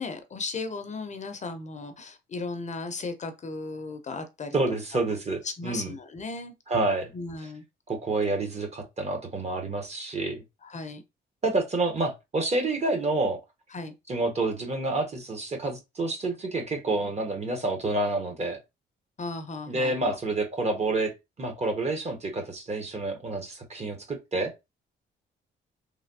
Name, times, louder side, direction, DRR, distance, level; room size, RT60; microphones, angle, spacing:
voice 1, 0.0-4.6 4.9-5.0 5.4-6.5 7.1-7.6 10.6-11.0 13.7-13.9 19.2-20.2, left 3 dB, 35° left, 0.5 m, -36 dB
voice 2, 4.5-5.9 6.7-7.1 7.9-10.4 11.4-13.4 14.1-18.6 19.7-24.5, right 2 dB, 35° right, 0.9 m, -28 dB
3.2 x 2.6 x 2.7 m
cardioid pair, 90°, 20 cm